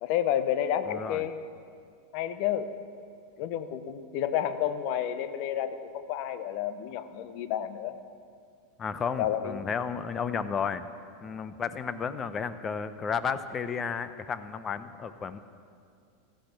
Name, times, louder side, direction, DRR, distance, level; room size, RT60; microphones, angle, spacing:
voice 1, 0.0-1.4 2.1-2.7 3.4-8.0 9.2-9.6, left 10 dB, 55° left, 11 dB, 1.0 m, -30 dB
voice 2, 0.9-1.3 8.8-10.9 11.2-15.4, left 6 dB, 30° left, 12 dB, 0.9 m, -33 dB
16.5 x 13.0 x 6.1 m, 2.3 s
hypercardioid pair, 95°, 0 cm